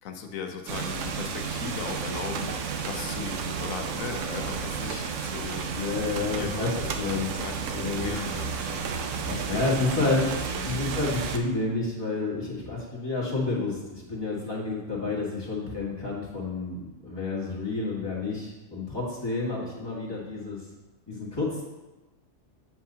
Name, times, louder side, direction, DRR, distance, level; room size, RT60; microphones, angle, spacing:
voice 1, 0.0-5.7 6.4-6.9 7.3-9.2 9.4-9.6 10.5-10.8, left 6 dB, 85° left, 4 dB, 1.1 m, -38 dB
sound 1, 0.7-11.4, right 5 dB, 70° right, 1.0 m, -32 dB
voice 2, 5.7-6.7 7.0-7.3 7.8-8.2 9.3-20.6 21.1-21.6, left 3 dB, 20° left, -6 dB, 1.8 m, -30 dB
7.7 x 7.3 x 2.8 m, 1.1 s
omnidirectional pair, 1.4 m